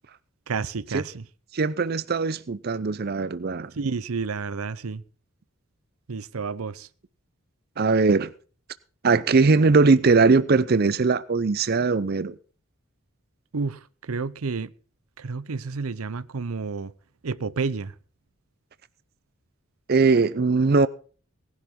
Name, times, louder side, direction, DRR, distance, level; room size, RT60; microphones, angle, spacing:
voice 1, 0.5-1.2 3.7-5.0 6.1-6.9 13.5-14.7 15.2-16.9 17.2-17.9, right 4 dB, 85° right, 0.7 m, -30 dB
voice 2, 1.5-3.7 7.8-8.3 9.0-12.4 19.9-20.9, right 4 dB, 45° right, 0.5 m, -20 dB
19.0 x 11.5 x 3.7 m
head